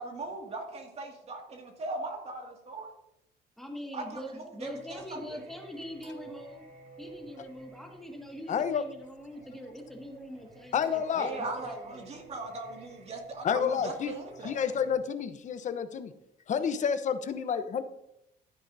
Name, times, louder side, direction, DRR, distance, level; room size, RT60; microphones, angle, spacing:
voice 1, 0.0-2.9 3.9-5.4 11.2-14.6, right 2 dB, 40° right, 2 dB, 2.2 m, -39 dB
voice 2, 3.6-6.6 7.0-12.0, equal, ahead, 1 dB, 1.9 m, -43 dB
Singing, 4.6-14.9, right 3 dB, 60° right, 3.3 m, -53 dB
voice 3, 8.5-8.8 10.7-11.3 13.4-14.1 14.4-16.1 16.5-17.8, left 7 dB, 45° left, 9 dB, 0.9 m, -29 dB
13.0 x 9.5 x 2.7 m, 0.82 s
cardioid pair, 110°, 17 cm